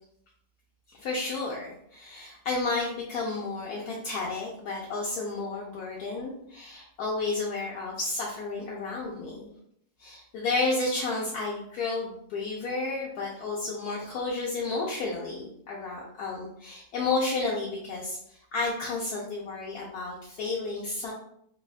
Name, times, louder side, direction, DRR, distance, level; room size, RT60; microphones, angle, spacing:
voice 1, 0.9-9.4 10.0-21.1, left 3 dB, 75° left, -4 dB, 1.0 m, -32 dB
3.3 x 2.2 x 2.4 m, 0.71 s
omnidirectional pair, 1.8 m